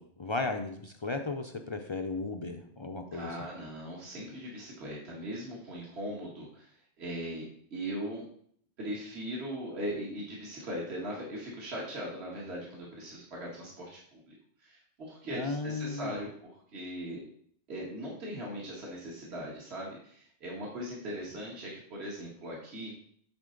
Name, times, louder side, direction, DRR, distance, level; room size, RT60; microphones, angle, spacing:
voice 1, 0.0-3.3 15.3-16.2, left 3 dB, 35° left, 4 dB, 0.4 m, -35 dB
voice 2, 3.1-7.4 7.7-8.2 8.8-17.2 17.7-22.9, equal, 65° right, -4 dB, 1.9 m, -39 dB
9.6 x 4.3 x 3.8 m, 0.62 s
omnidirectional pair, 1.2 m